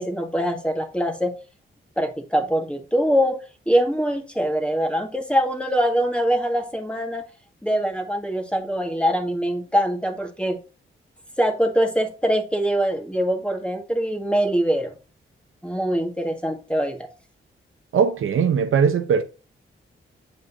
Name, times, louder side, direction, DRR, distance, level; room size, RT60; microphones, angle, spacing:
voice 1, 0.0-1.3 2.0-3.4 3.7-7.2 7.6-10.6 11.4-14.9 15.6-17.0, equal, 5° left, 1.8 m, -23 dB
voice 2, 17.9-19.2, right 6 dB, 75° right, 0.8 m, -20 dB
7.9 x 5.2 x 2.7 m
cardioid pair, 55°, 21 cm